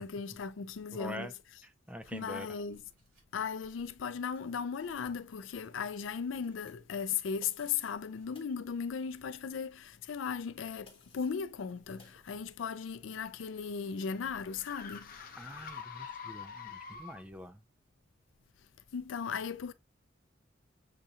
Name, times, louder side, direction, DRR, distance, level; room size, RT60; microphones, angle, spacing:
voice 1, 0.0-1.3 2.1-2.8 3.3-15.2 18.9-19.7, left 6 dB, 80° left, 0.4 m, -37 dB
voice 2, 0.9-1.3 1.6-2.5 15.4-17.6, equal, 5° right, 0.4 m, -45 dB
sound 1, 2.0-2.4 2.7-7.2 7.5-7.7 8.1-8.5 9.0-9.7 10.1-10.7 11.2-11.6 11.9-12.5, right 1 dB, 85° right, 3.0 m, -69 dB
sound 2, 7.4-8.0 8.3-8.6 10.9-11.5 12.0-12.2, left 4 dB, 30° left, 1.2 m, -59 dB
sound 3, 12.9-17.4, left 6 dB, 45° left, 0.7 m, -47 dB
6.6 x 2.5 x 2.7 m
head